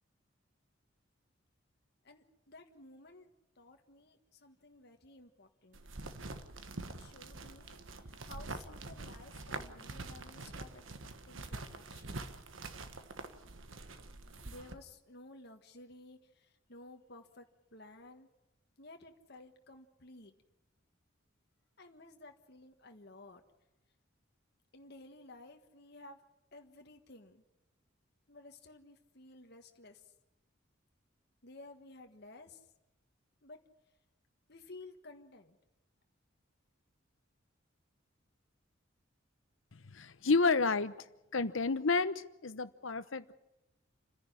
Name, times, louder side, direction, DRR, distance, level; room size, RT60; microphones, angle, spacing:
voice 1, 2.0-3.3 3.6-5.8 7.0-10.8 11.3-12.3 14.4-17.5 17.7-18.3 18.8-20.3 21.8-23.4 24.7-26.2 26.5-27.4 28.3-30.0 31.4-32.6 33.4-33.6 34.5-35.6, left 2 dB, 50° left, 1.5 m, -54 dB
sound 1, 5.7-14.7, right 3 dB, 75° right, 1.4 m, -45 dB
voice 2, 39.7-41.1 41.3-43.3, left 4 dB, 75° left, 0.9 m, -31 dB
29.0 x 10.5 x 9.9 m
head